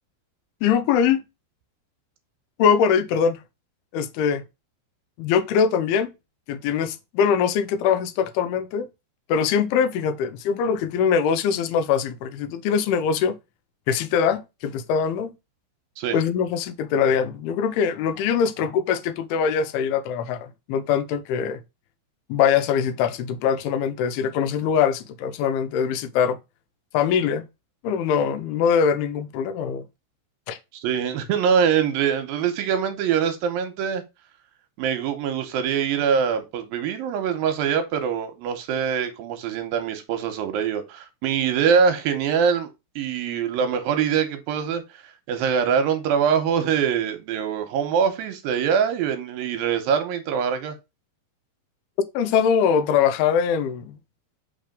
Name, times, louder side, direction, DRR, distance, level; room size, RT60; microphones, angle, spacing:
voice 1, 0.6-1.2 2.6-3.4 3.9-4.4 5.2-6.1 6.5-8.9 9.3-13.4 13.9-15.3 16.1-21.6 22.3-26.4 26.9-27.4 27.8-29.8 30.5-30.6 52.1-54.0, left 7 dB, 90° left, 2.6 m, -22 dB
voice 2, 30.7-34.0 34.8-42.7 43.0-44.8 45.3-50.8, right 7 dB, 80° right, 2.5 m, -23 dB
5.7 x 3.3 x 5.1 m
omnidirectional pair, 4.4 m